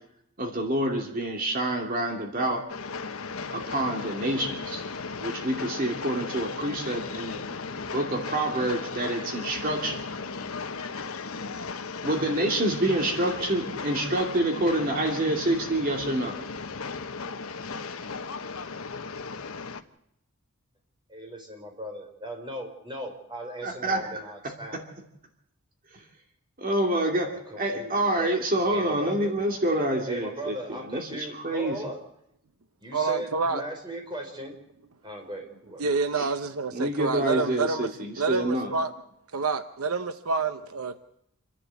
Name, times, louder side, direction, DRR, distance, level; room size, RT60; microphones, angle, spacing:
voice 1, 0.4-2.6 3.5-4.8 5.2-7.4 7.9-10.0 12.0-16.3 23.6-24.0 24.7-24.8 25.9-26.0 26.6-31.8 36.1-36.3 36.7-38.7, right 1 dB, 40° right, 2.6 m, -27 dB
Train, 2.7-19.8, left 4 dB, 75° left, 1.1 m, -36 dB
voice 2, 21.1-24.8 27.3-28.3 28.7-29.3 30.1-32.0 32.8-34.5 35.0-35.8, equal, 20° right, 4.8 m, -38 dB
voice 3, 32.9-33.6 35.8-37.9 38.2-38.9 39.3-41.0, right 4 dB, 85° right, 1.0 m, -28 dB
28.0 x 11.0 x 8.3 m
head